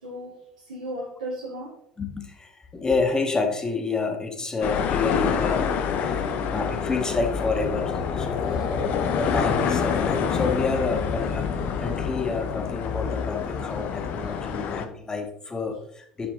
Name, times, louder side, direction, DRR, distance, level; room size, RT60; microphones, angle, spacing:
voice 1, 0.0-1.8 6.3-6.5 8.2-8.7 14.2-14.6, right 1 dB, 75° right, -5 dB, 2.2 m, -37 dB
voice 2, 2.0-5.7 6.0-8.8 9.2-16.3, left 4 dB, 20° left, 4 dB, 1.6 m, -29 dB
Bruit-de-Mer, 4.6-14.9, left 6 dB, 50° left, 0.8 m, -27 dB
10.0 x 4.9 x 3.7 m, 0.70 s
figure-of-eight pair, 65°, 3 cm